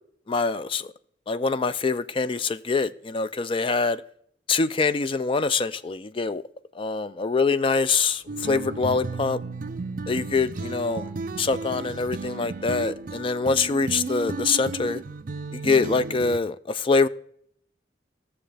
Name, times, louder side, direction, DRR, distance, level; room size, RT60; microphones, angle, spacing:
voice 1, 0.3-0.9 1.3-4.0 4.5-6.4 6.7-9.4 10.1-11.1 11.4-15.0 15.5-17.1, left 4 dB, 30° left, 0.3 m, -24 dB
sound 1, 7.7-13.4, right 1 dB, 70° left, 3.4 m, -52 dB
sound 2, 8.3-16.4, right 3 dB, 50° right, 0.4 m, -34 dB
17.0 x 6.9 x 3.3 m
head